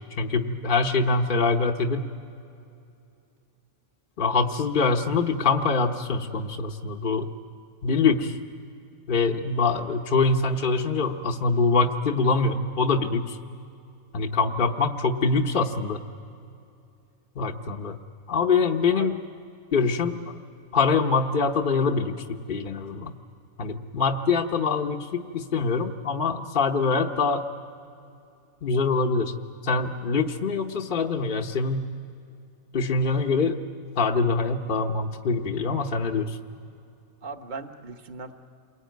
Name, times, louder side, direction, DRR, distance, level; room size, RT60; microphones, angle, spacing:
voice 1, 0.2-2.0 4.2-7.3 7.8-8.4 9.1-13.4 14.1-16.0 17.4-18.0 18.3-19.1 19.7-20.2 20.7-23.1 23.6-27.5 28.6-29.3 29.6-31.9 32.7-33.6 34.0-36.4, left 4 dB, 45° left, 1 dB, 1.0 m, -24 dB
voice 2, 37.2-38.3, right 4 dB, 40° right, 5 dB, 1.3 m, -38 dB
29.0 x 22.0 x 9.2 m, 2.6 s
omnidirectional pair, 1.4 m